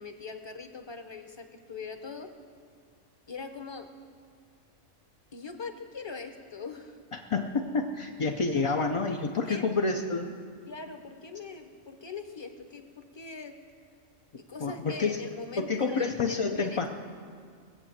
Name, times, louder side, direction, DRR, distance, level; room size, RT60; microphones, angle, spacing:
voice 1, 0.0-2.3 3.3-3.9 5.3-7.0 8.5-8.6 9.3-9.6 10.7-13.6 14.4-16.9, left 4 dB, 25° left, 7 dB, 0.8 m, -42 dB
voice 2, 7.1-10.3 14.6-15.2 15.6-16.9, left 4 dB, 45° left, 2 dB, 0.4 m, -28 dB
20.0 x 7.9 x 7.3 m, 2.1 s
omnidirectional pair, 1.3 m